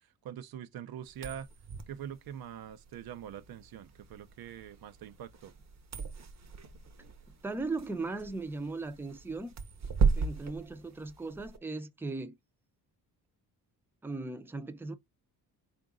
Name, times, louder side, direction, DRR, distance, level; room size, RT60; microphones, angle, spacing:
voice 1, 0.2-1.5 1.9-5.5, right 9 dB, 70° right, 0.6 m, -44 dB
sound 1, 1.1-11.6, right 5 dB, 45° right, 0.9 m, -36 dB
voice 2, 7.4-9.5 10.1-12.4 14.0-15.0, right 3 dB, 5° right, 0.6 m, -37 dB
3.8 x 2.5 x 3.6 m
cardioid pair, 95°, 38 cm